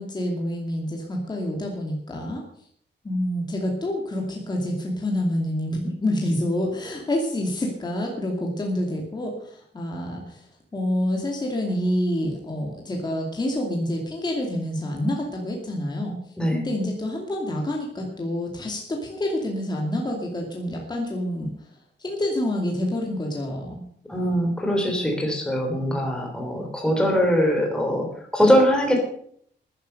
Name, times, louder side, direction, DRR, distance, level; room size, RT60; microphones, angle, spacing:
voice 1, 0.0-2.4 3.0-10.5 10.7-16.2 16.5-21.7 22.0-23.8, left 1 dB, 20° left, 0 dB, 2.5 m, -27 dB
voice 2, 24.1-28.1 28.3-29.0, equal, 5° left, 1 dB, 3.4 m, -22 dB
13.0 x 10.5 x 6.7 m, 0.63 s
wide cardioid pair, 175°, 19 cm